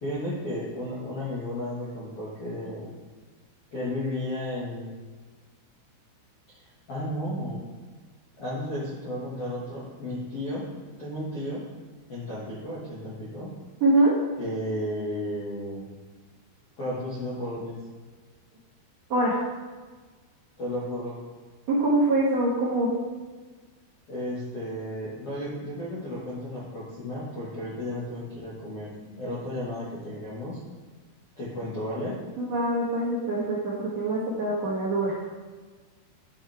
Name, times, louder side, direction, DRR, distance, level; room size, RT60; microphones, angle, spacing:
voice 1, 0.0-2.9 3.7-4.9 6.5-7.6 8.4-10.6 11.0-11.6 12.1-13.5 14.4-15.8 16.8-17.8 20.6-21.2 24.1-30.6 31.3-32.2, left 1 dB, 60° left, -9 dB, 1.5 m, -33 dB
voice 2, 13.8-14.2 19.1-19.4 21.7-22.9 32.4-35.2, right 2 dB, 60° right, -11 dB, 1.8 m, -24 dB
11.5 x 5.6 x 3.5 m, 1.4 s
omnidirectional pair, 5.5 m